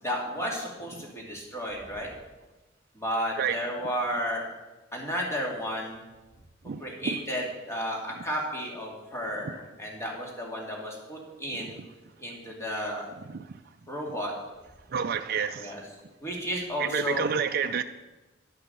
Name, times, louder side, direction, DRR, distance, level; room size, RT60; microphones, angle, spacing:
voice 1, 0.0-2.1 2.9-4.5 4.9-6.0 6.8-11.8 12.2-13.1 13.9-14.3 15.5-15.9 16.2-17.3, equal, 15° left, 2.4 m, -33 dB
voice 2, 14.9-15.8 16.8-17.8, right 6 dB, 55° right, 0.4 m, -28 dB
11.0 x 6.7 x 6.7 m
head